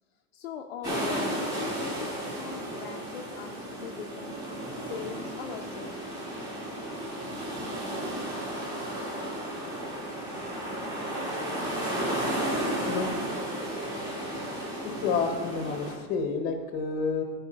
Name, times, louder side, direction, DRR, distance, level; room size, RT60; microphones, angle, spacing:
voice 1, 0.3-4.4 4.9-6.0, left 7 dB, 40° left, 3 dB, 0.5 m, -41 dB
sound 1, 0.8-15.9, right 1 dB, 10° right, 2.0 m, -33 dB
voice 2, 14.8-17.2, left 5 dB, 20° left, 5 dB, 0.8 m, -29 dB
13.5 x 4.8 x 5.0 m, 1.3 s
supercardioid pair, 180°, 48 cm